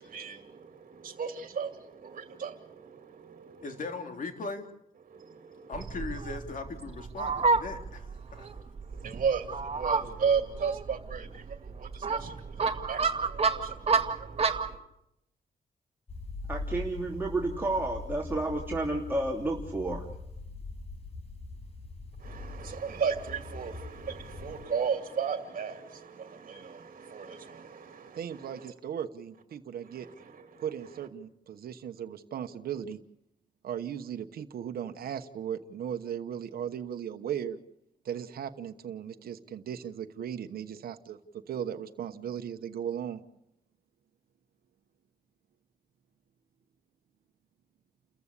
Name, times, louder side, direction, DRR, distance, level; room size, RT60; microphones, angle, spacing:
voice 1, 0.0-3.8 5.1-5.9 8.3-14.8 22.2-28.7 29.9-30.7, right 6 dB, 60° right, 6 dB, 2.5 m, -35 dB
voice 2, 3.6-4.6 5.7-8.0 8.3-8.5, left 3 dB, 60° left, 5 dB, 3.3 m, -38 dB
Fowl, 5.7-14.8, right 4 dB, 40° right, 1.9 m, -30 dB
sound 1, 16.1-24.6, left 2 dB, 40° left, 5.8 m, -42 dB
voice 3, 16.5-20.1, right 2 dB, 15° right, -2 dB, 3.0 m, -31 dB
voice 4, 28.2-30.1 30.6-33.0 33.6-37.6 38.0-41.2 41.5-43.2, right 9 dB, 90° right, 7 dB, 1.1 m, -37 dB
30.0 x 14.5 x 8.4 m, 0.83 s
cardioid pair, 90°, 15 cm